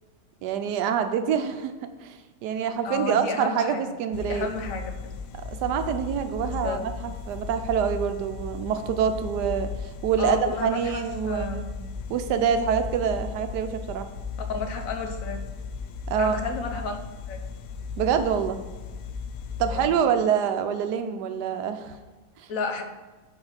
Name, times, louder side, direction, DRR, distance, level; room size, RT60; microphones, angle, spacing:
voice 1, 0.4-1.7 2.0-4.5 5.4-11.6 12.1-14.1 16.1-16.4 18.0-18.6 19.6-22.0 22.4-22.5, right 7 dB, 80° right, 8 dB, 1.2 m, -26 dB
voice 2, 2.8-5.2 6.4-6.9 10.2-11.8 14.5-15.4 16.2-17.0 17.3-17.4 19.7-20.0 22.5-22.8, left 4 dB, 65° left, 6 dB, 1.0 m, -32 dB
sound 1, 4.1-19.9, left 5 dB, 85° left, 1.2 m, -36 dB
5.2 x 4.9 x 5.6 m, 1.2 s
omnidirectional pair, 1.8 m